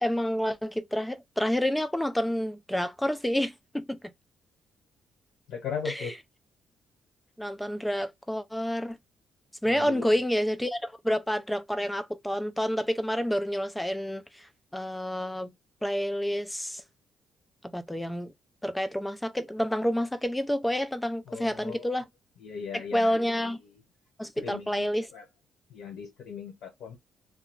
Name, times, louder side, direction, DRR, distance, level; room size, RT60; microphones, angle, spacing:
voice 1, 0.0-4.0 5.9-6.1 7.4-9.0 9.6-15.5 15.8-16.8 17.7-18.3 18.6-22.1 22.7-23.6 24.2-25.1, equal, 5° left, 0.4 m, -29 dB
voice 2, 5.5-6.1 9.6-10.1 21.3-22.0 22.4-23.8 24.3-25.2 25.7-27.0, left 7 dB, 80° left, 1.0 m, -39 dB
2.4 x 2.1 x 3.0 m
cardioid pair, 90°, 0 cm